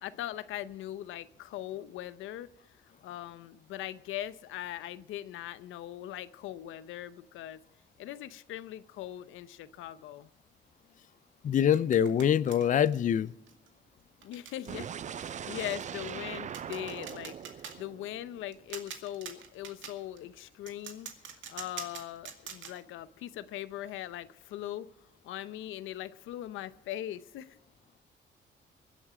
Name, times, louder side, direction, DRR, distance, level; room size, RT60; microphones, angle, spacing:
voice 1, 0.0-2.5 3.0-7.6 8.0-10.3 14.2-21.1 21.5-24.9 25.2-27.6, left 13 dB, 85° left, 0.7 m, -40 dB
voice 2, 11.4-13.3, left 9 dB, 40° left, 0.4 m, -24 dB
sound 1, 11.7-12.9 13.5-13.7 14.2-14.7 15.0-15.1 15.4-15.5 15.8-16.1 16.5-17.8 18.5-20.2 20.7-22.8, right 7 dB, 75° right, 2.2 m, -44 dB
sound 2, 14.7-18.6, right 8 dB, 40° right, 0.4 m, -41 dB
23.5 x 8.1 x 4.9 m
cardioid pair, 90°, 20 cm